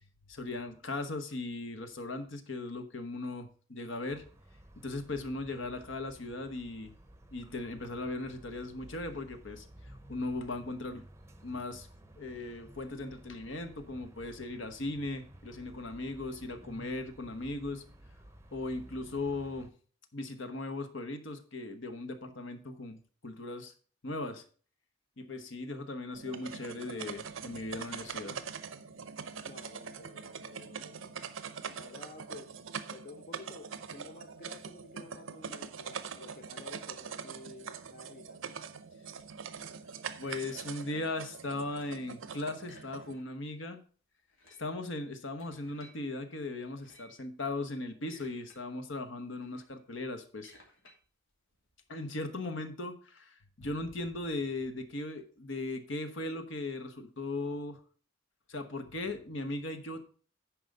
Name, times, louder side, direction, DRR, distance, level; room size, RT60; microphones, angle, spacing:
voice 1, 0.3-4.2 4.8-6.9 7.3-9.6 10.1-11.0 11.4-11.9 12.2-17.8 18.5-19.7 20.1-23.7 24.0-24.4 25.2-28.4 40.2-43.8 44.6-50.5 51.9-57.8 58.5-60.0, left 2 dB, 70° left, 8 dB, 1.1 m, -38 dB
sound 1, 4.1-19.7, right 1 dB, 15° right, 0.7 m, -54 dB
sound 2, 26.1-43.1, right 6 dB, 80° right, 0.7 m, -43 dB
voice 2, 29.4-31.1 31.7-32.5 32.9-38.4, left 3 dB, 45° left, 6 dB, 0.7 m, -51 dB
sound 3, 39.2-41.1 41.4-42.1 42.6-43.5 43.8-43.9 44.2-46.0 46.6-47.2 47.8-48.6 48.9-52.3, left 1 dB, 90° left, 2.7 m, -61 dB
10.5 x 4.8 x 5.3 m, 0.42 s
head